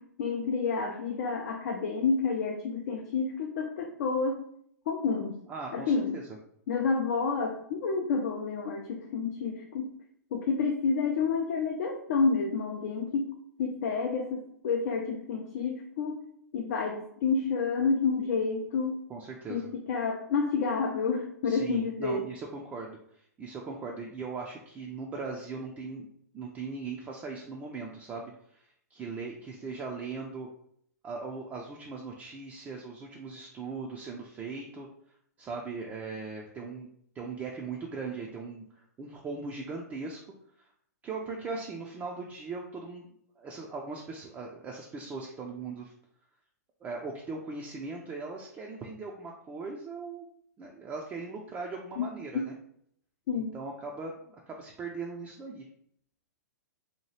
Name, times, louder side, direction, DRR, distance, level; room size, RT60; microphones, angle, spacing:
voice 1, 0.0-4.4 4.9-5.4 5.7-6.2 6.7-9.9 10.3-13.3 13.6-16.2 16.5-19.0 19.5-22.3 52.0-52.1 52.3-52.4 53.3-53.6, left 5 dB, 55° left, 2 dB, 0.4 m, -29 dB
voice 2, 5.5-6.2 19.1-19.7 21.5-26.1 26.3-30.5 31.0-34.9 35.4-36.9 37.1-40.2 41.0-43.1 43.4-45.9 46.8-50.3 50.6-52.5 53.3-55.7, right 4 dB, 15° right, -1 dB, 0.4 m, -39 dB
2.8 x 2.2 x 3.1 m, 0.68 s
figure-of-eight pair, 110°, 9 cm